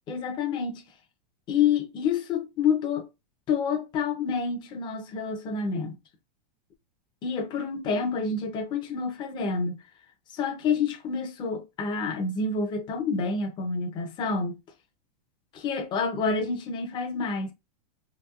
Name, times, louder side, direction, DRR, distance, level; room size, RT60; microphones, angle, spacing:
voice 1, 0.1-0.8 1.5-3.1 3.5-6.0 7.2-9.8 10.3-14.6 15.5-17.5, left 5 dB, 20° left, 0.6 m, -28 dB
2.9 x 2.9 x 2.3 m
supercardioid pair, 150°, 21 cm